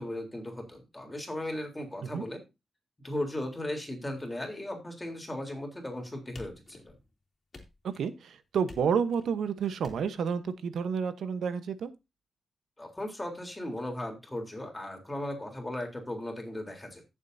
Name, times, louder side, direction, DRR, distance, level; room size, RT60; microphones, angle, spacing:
voice 1, 0.0-2.4 3.0-6.9 12.8-17.0, left 1 dB, 20° left, 3 dB, 3.6 m, -37 dB
sound 1, 6.3-7.1 7.5-8.1 8.7-9.3 9.8-10.3, left 3 dB, 40° left, 3.0 m, -51 dB
voice 2, 7.8-11.9, right 6 dB, 80° right, 12 dB, 1.0 m, -30 dB
15.0 x 7.4 x 2.7 m, 0.24 s
cardioid pair, 70°, 0 cm